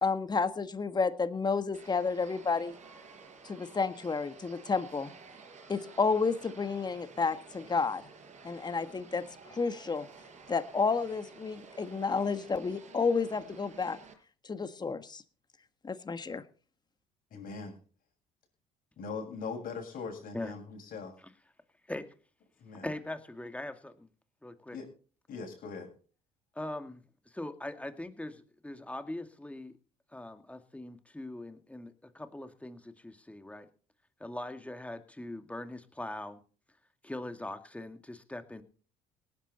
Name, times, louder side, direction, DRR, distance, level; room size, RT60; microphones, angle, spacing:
voice 1, 0.0-2.8 3.4-5.1 5.7-8.0 8.4-9.2 9.5-10.1 10.5-14.0 14.4-15.2 15.8-16.4, left 4 dB, 25° left, 10 dB, 1.5 m, -31 dB
sound 1, 1.7-14.1, right 4 dB, 45° right, 5.1 m, -52 dB
voice 2, 17.3-17.8 19.0-21.1 22.6-22.9 24.7-24.9 25.3-25.9, left 5 dB, 60° left, 2 dB, 7.3 m, -40 dB
voice 3, 22.8-24.1 24.4-24.8 26.5-29.8 30.1-33.7 34.2-36.4 37.0-38.6, left 1 dB, 10° left, 7 dB, 2.3 m, -41 dB
18.5 x 10.5 x 4.3 m, 0.39 s
supercardioid pair, 70°, 16 cm